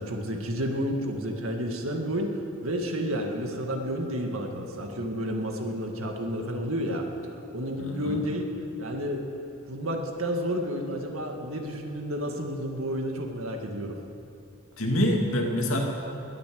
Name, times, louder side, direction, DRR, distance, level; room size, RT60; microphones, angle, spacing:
voice 1, 0.0-8.5 8.8-9.2 9.7-14.0, equal, 80° right, 2 dB, 2.0 m, -31 dB
voice 2, 7.8-8.2 14.8-15.8, equal, 80° left, 1 dB, 2.3 m, -26 dB
20.5 x 8.7 x 7.7 m, 2.7 s
head